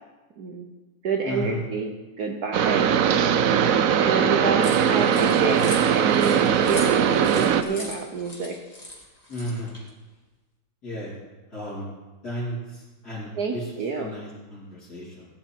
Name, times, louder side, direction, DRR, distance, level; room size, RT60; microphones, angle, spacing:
voice 1, 0.4-0.7 1.0-2.9 4.0-8.6 13.4-14.1, right 4 dB, 60° right, 3 dB, 1.2 m, -28 dB
voice 2, 1.2-1.6 9.3-9.7 10.8-11.1 11.5-11.9 12.2-15.3, equal, 50° left, -8 dB, 3.3 m, -34 dB
sound 1, 2.5-7.6, right 8 dB, 90° right, 0.7 m, -20 dB
sound 2, 4.6-9.9, left 1 dB, 20° left, 2.2 m, -39 dB
16.0 x 9.7 x 4.5 m, 1.2 s
omnidirectional pair, 2.3 m